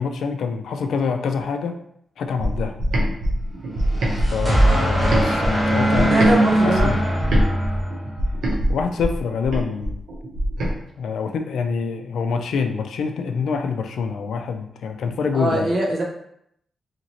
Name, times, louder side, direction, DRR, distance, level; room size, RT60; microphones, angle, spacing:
voice 1, 0.0-1.8 2.2-2.8 4.3-7.0 8.7-10.0 11.0-15.7, left 5 dB, 90° left, 6 dB, 0.3 m, -26 dB
sound 1, 2.4-6.4 6.7-10.7, equal, 85° right, 0.5 m, -23 dB
sound 2, 3.8-8.3, right 1 dB, 10° right, 0.9 m, -21 dB
voice 2, 5.9-7.0 15.3-16.0, right 1 dB, 50° right, -3 dB, 0.8 m, -22 dB
2.8 x 2.6 x 2.9 m, 0.73 s
wide cardioid pair, 160°, 0 cm